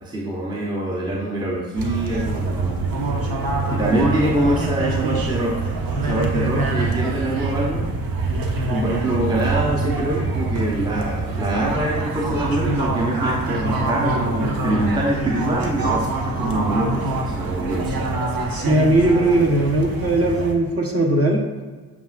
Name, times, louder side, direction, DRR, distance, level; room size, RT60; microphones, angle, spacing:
voice 1, 0.0-2.8 3.7-5.6 6.0-7.9 8.7-18.1, right 1 dB, 10° right, -2 dB, 0.8 m, -24 dB
sound 1, 1.8-20.5, right 2 dB, 50° right, 0.8 m, -25 dB
voice 2, 18.5-21.4, right 1 dB, 30° right, 0 dB, 1.1 m, -18 dB
7.0 x 2.4 x 2.5 m, 1.4 s
hypercardioid pair, 45°, 44 cm